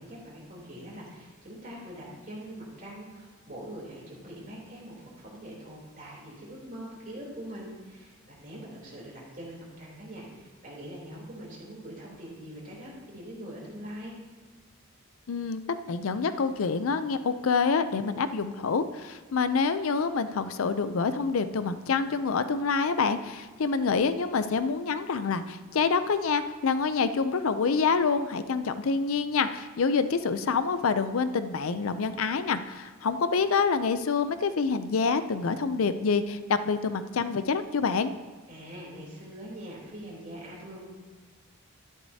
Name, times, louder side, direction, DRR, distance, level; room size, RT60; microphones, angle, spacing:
voice 1, 0.0-14.1 38.5-40.9, equal, 40° right, -4 dB, 3.3 m, -43 dB
voice 2, 15.3-15.6 15.9-38.1, left 5 dB, 75° left, 11 dB, 0.5 m, -27 dB
12.0 x 10.0 x 2.8 m, 1.4 s
head